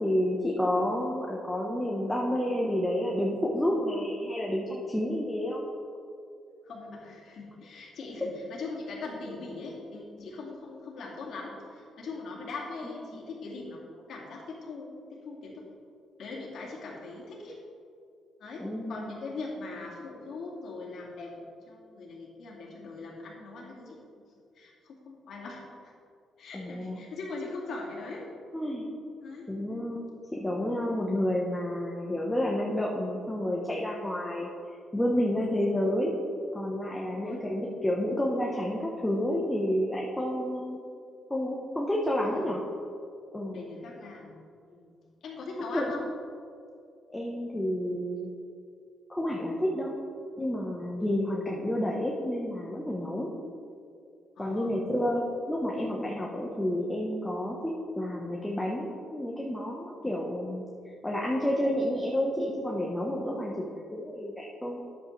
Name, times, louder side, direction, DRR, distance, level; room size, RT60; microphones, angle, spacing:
voice 1, 0.0-5.6 13.1-13.2 18.6-19.1 26.5-27.0 28.5-28.9 29.5-30.0 30.3-34.5 34.9-36.1 36.5-40.8 41.3-42.6 43.3-43.6 45.7-45.8 47.1-48.3 49.1-49.9 50.4-53.3 54.4-60.6 61.0-64.8, left 1 dB, 10° left, -2 dB, 1.0 m, -30 dB
voice 2, 6.6-15.7 16.2-17.6 18.4-24.0 24.6-25.9 26.4-28.2 29.2-29.5 37.0-37.4 42.3-42.4 43.5-44.3 44.7-44.9 45.2-46.0 54.4-54.8, left 3 dB, 65° left, -3 dB, 2.2 m, -41 dB
10.0 x 8.2 x 3.3 m, 2.4 s
cardioid pair, 90°, 0 cm